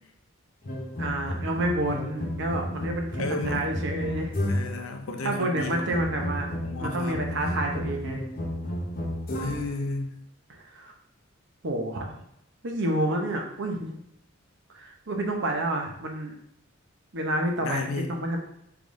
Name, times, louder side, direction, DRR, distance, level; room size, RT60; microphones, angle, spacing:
sound 1, 0.6-4.9 5.6-9.8, left 1 dB, 45° left, 0.7 m, -32 dB
voice 1, 1.0-4.3 5.2-6.5 6.8-8.2 10.7-10.9 11.6-12.1 12.6-14.0 14.7-16.3 17.1-18.4, right 1 dB, 60° right, 2 dB, 0.8 m, -29 dB
voice 2, 3.2-3.7 4.5-6.0 6.6-7.3 9.4-10.1 17.6-18.1, left 3 dB, 85° left, 5 dB, 0.6 m, -33 dB
4.9 x 3.4 x 2.6 m, 0.74 s
head